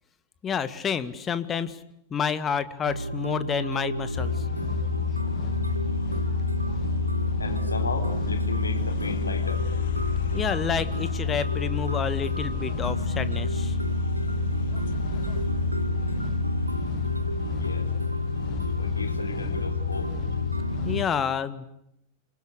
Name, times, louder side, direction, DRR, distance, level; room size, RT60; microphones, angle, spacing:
voice 1, 0.4-1.8 2.1-4.3 10.3-13.7 18.8-18.9 20.9-21.7, left 7 dB, 25° left, 13 dB, 1.9 m, -29 dB
sound 1, 2.9-21.0, right 1 dB, 90° right, 1.3 m, -31 dB
sound 2, 4.0-20.5, left 9 dB, 60° left, 1.2 m, -41 dB
sound 3, 4.2-21.1, left 8 dB, 40° left, 1.6 m, -30 dB
voice 2, 7.4-9.7 17.6-17.9 18.8-20.1, left 4 dB, 75° left, 6 dB, 4.0 m, -35 dB
27.5 x 24.5 x 8.3 m, 0.78 s
figure-of-eight pair, 90°, 0 cm